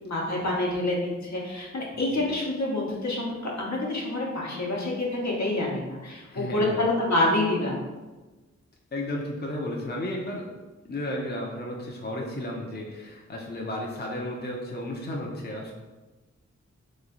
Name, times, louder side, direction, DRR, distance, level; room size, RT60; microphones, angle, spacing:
voice 1, 0.0-7.8, left 2 dB, 70° left, -3 dB, 1.0 m, -27 dB
voice 2, 1.9-2.3 6.3-6.9 8.9-10.4 10.8-15.7, left 1 dB, 35° left, -2 dB, 0.7 m, -33 dB
3.2 x 3.1 x 3.8 m, 1.2 s
cardioid pair, 45°, 29 cm